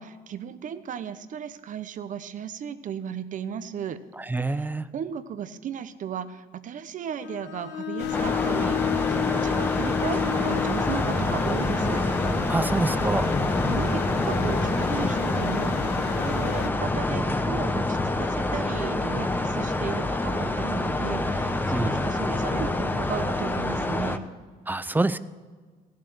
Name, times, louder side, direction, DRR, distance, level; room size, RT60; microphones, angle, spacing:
voice 1, 0.0-4.0 4.4-12.0 13.6-24.2, right 8 dB, 50° right, 12 dB, 0.8 m, -35 dB
voice 2, 4.3-4.8 12.5-13.3 21.7-22.0 24.7-25.2, right 2 dB, 10° right, 15 dB, 0.4 m, -25 dB
Bowed string instrument, 7.2-11.2, left 11 dB, 50° left, 2.0 m, -30 dB
sound 1, 8.0-16.7, left 14 dB, 75° left, 0.4 m, -35 dB
sound 2, 8.1-24.2, left 2 dB, 10° left, 0.8 m, -26 dB
16.5 x 7.5 x 6.3 m, 1.5 s
cardioid pair, 110°, 17 cm